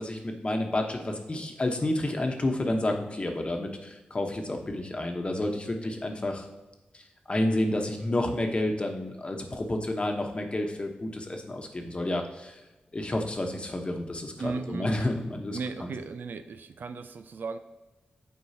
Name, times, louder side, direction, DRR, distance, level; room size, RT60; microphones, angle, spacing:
voice 1, 0.0-6.5 6.9-12.6 12.9-15.9, left 1 dB, 35° left, 3 dB, 1.1 m, -30 dB
voice 2, 14.4-15.1 15.5-17.6, right 4 dB, 75° right, 10 dB, 0.4 m, -36 dB
7.9 x 4.6 x 2.8 m, 1.1 s
cardioid pair, 60°, 3 cm